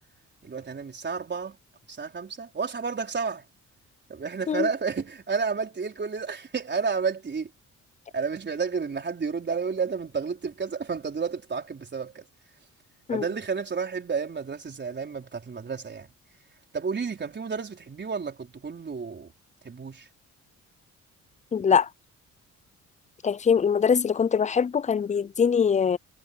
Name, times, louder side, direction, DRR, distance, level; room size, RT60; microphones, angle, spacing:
voice 1, 0.4-1.6 1.9-3.4 4.1-7.5 8.1-12.3 13.1-16.1 16.7-19.3 19.6-20.1, right 5 dB, 35° right, 4.6 m, -31 dB
voice 2, 21.5-21.9 23.2-26.0, left 6 dB, 25° left, 0.4 m, -22 dB
cardioid pair, 90°, 30 cm